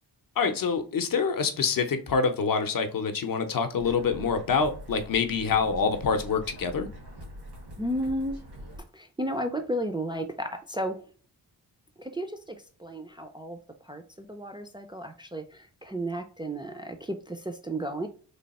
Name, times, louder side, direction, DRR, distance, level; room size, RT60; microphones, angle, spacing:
voice 1, 0.4-6.9, left 5 dB, 60° left, 0.6 m, -26 dB
sound 1, 3.8-8.8, equal, 85° right, 1.5 m, -44 dB
voice 2, 7.8-8.4 8.9-11.0 12.0-13.6 13.8-18.1, right 1 dB, 15° right, 0.3 m, -33 dB
3.3 x 2.3 x 4.0 m
wide cardioid pair, 115°, 39 cm